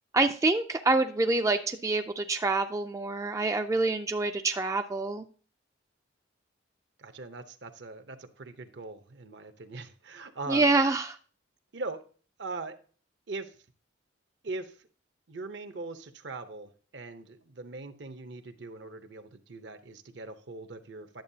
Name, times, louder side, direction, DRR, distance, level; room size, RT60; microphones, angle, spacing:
voice 1, 0.1-5.3 10.5-11.2, right 3 dB, 15° right, 6 dB, 0.3 m, -26 dB
voice 2, 7.0-10.8 11.7-12.0 12.4-12.8 13.3-13.6 14.4-14.8 15.3-21.2, right 3 dB, 65° right, 10 dB, 0.8 m, -41 dB
10.5 x 7.4 x 2.7 m, 0.40 s
head